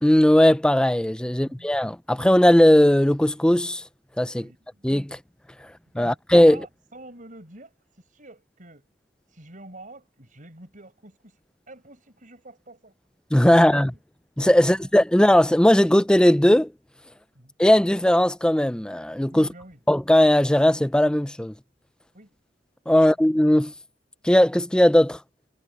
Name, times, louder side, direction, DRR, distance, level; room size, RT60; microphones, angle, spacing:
voice 1, 0.0-3.8 4.2-4.4 4.8-5.2 6.0-6.6 13.3-13.9 14.4-16.7 17.6-19.5 19.9-21.5 22.9-23.7 24.2-25.2, left 1 dB, 5° left, 0.4 m, -18 dB
voice 2, 1.3-1.7 4.3-4.9 5.9-6.2 6.5-8.9 9.3-11.4 11.7-13.0 13.5-13.9 14.5-14.9 17.3-17.5 19.3-19.8 22.1-22.4, right 2 dB, 50° right, 5.6 m, -47 dB
head